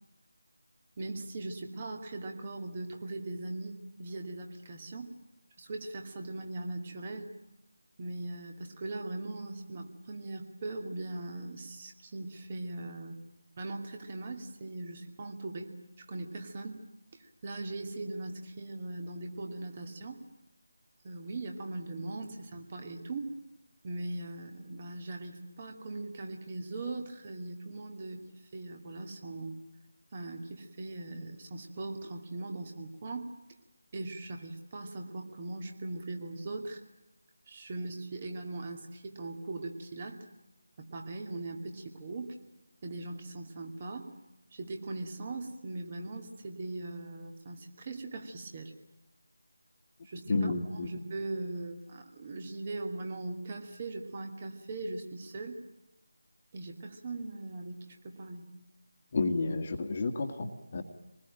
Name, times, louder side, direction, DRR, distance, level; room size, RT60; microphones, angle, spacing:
voice 1, 1.0-5.1 5.6-7.3 8.0-13.2 13.6-15.7 16.1-16.8 17.4-20.2 21.0-23.3 23.8-29.6 30.1-33.3 33.9-36.8 37.5-40.2 40.8-42.4 42.8-44.1 44.5-48.7 50.0-50.5 50.8-55.6 56.5-58.5, right 2 dB, 30° right, 3 dB, 2.5 m, -40 dB
voice 2, 50.3-50.9 59.1-60.8, left 3 dB, 35° left, 5 dB, 2.0 m, -31 dB
25.5 x 20.5 x 9.0 m, 0.97 s
figure-of-eight pair, 165°, 0 cm